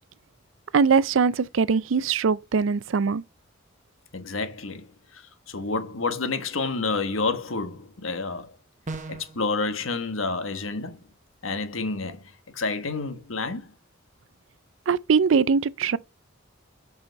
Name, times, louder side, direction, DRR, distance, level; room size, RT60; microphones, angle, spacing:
voice 1, 0.7-3.2 14.9-16.0, right 5 dB, 65° right, 0.4 m, -21 dB
voice 2, 4.1-4.9 5.1-5.2 5.5-8.5 9.1-11.0 11.4-12.2 12.5-13.7, left 3 dB, 75° left, 1.3 m, -29 dB
sound 1, 8.9-9.4, right 3 dB, 40° right, 1.1 m, -35 dB
7.9 x 5.5 x 4.5 m
head